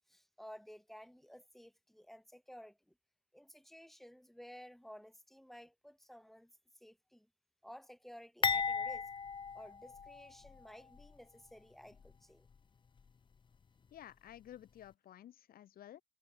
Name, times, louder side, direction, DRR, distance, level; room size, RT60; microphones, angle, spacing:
voice 1, 0.1-2.9 3.3-7.3 7.6-9.1 9.5-12.5, equal, ahead, 6.3 m, -55 dB
sound 1, 8.4-10.6 10.9-11.1 12.0-12.1, left 5 dB, 30° left, 1.1 m, -36 dB
voice 2, 13.9-16.0, left 11 dB, 60° left, 3.9 m, -53 dB
cardioid pair, 110°, 17 cm